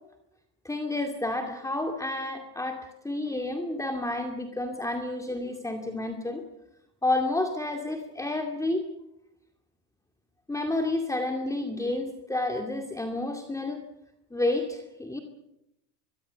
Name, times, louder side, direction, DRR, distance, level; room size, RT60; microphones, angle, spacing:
voice 1, 0.6-6.4 7.0-8.9 10.5-13.8 14.3-15.2, left 2 dB, 5° left, 3 dB, 2.3 m, -30 dB
23.5 x 22.5 x 6.7 m, 0.85 s
supercardioid pair, 115°, 46 cm